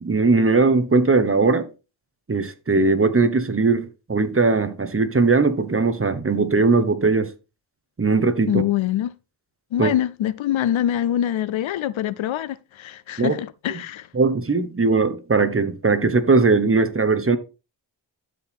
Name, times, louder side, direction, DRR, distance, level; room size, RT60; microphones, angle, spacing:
voice 1, 0.0-1.7 2.3-7.3 8.0-8.6 9.8-9.9 13.2-13.4 13.7-13.8 14.1-17.4, right 3 dB, 30° right, 1.2 m, -19 dB
voice 2, 8.5-9.1 9.7-14.1, left 11 dB, 85° left, 0.6 m, -24 dB
12.5 x 4.7 x 3.6 m
cardioid pair, 70°, 46 cm